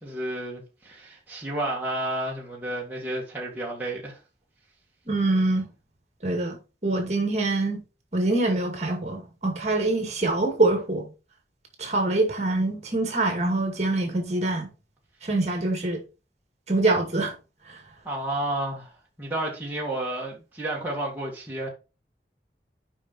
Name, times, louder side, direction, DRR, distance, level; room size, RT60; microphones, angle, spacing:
voice 1, 0.0-4.2 18.0-21.7, right 1 dB, 10° right, 2.0 m, -31 dB
voice 2, 5.1-5.7 6.2-6.6 6.8-7.8 8.1-11.0 11.8-14.7 15.2-16.0 16.7-17.3 17.7-17.8, right 2 dB, 40° right, 2.2 m, -24 dB
7.1 x 5.5 x 4.2 m
head